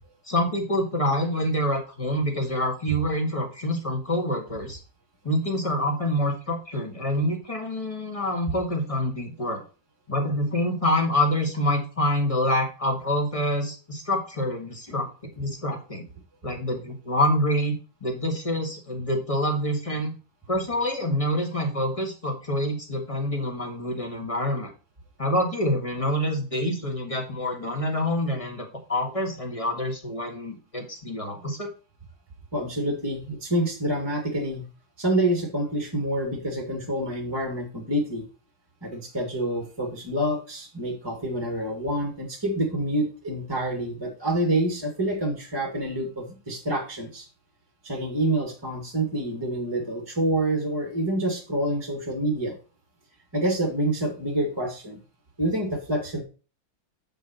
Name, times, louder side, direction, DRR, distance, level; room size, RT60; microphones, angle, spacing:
voice 1, 0.3-4.8 5.2-9.6 10.1-16.0 16.4-17.7 18.0-20.1 20.5-24.7 25.2-31.7, left 1 dB, 15° left, 2 dB, 1.7 m, -26 dB
voice 2, 32.5-34.6 35.0-38.2 38.8-47.3 47.8-52.6 53.3-55.0 55.4-56.2, right 1 dB, 15° right, 3 dB, 1.6 m, -27 dB
7.7 x 5.4 x 4.3 m, 0.35 s
omnidirectional pair, 2.3 m